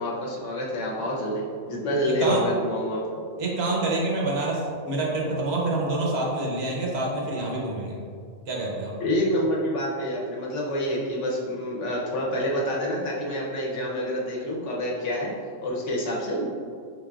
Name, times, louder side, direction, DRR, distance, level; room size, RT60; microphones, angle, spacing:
voice 1, 0.0-3.0 9.0-15.3 15.6-16.5, equal, 80° left, -3 dB, 1.1 m, -27 dB
voice 2, 3.4-8.0 8.5-9.0, right 2 dB, 65° right, -3 dB, 1.0 m, -27 dB
3.9 x 3.8 x 2.3 m, 2.2 s
omnidirectional pair, 1.2 m